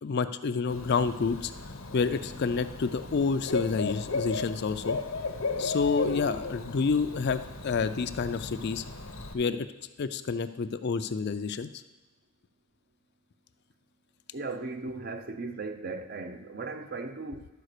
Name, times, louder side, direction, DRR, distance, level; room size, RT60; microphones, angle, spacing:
voice 1, 0.0-1.5 1.9-5.0 5.6-8.8 9.3-9.7 10.0-11.7, left 5 dB, 55° left, 0.4 m, -29 dB
Bird / Cricket, 0.7-9.3, left 4 dB, 90° left, 1.0 m, -35 dB
voice 2, 14.3-17.5, right 3 dB, 45° right, 0.6 m, -37 dB
11.5 x 4.9 x 6.6 m
head